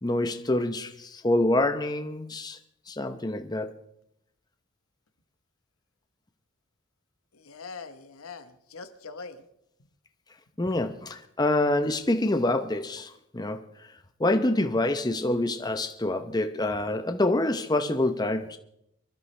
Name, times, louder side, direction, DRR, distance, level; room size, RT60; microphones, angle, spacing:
voice 1, 0.0-2.6 2.9-3.7 10.6-13.6 14.2-18.6, left 1 dB, 20° left, 0.8 m, -26 dB
voice 2, 7.3-9.4 10.8-10.9, left 4 dB, 90° left, 1.2 m, -43 dB
24.0 x 13.0 x 3.3 m
head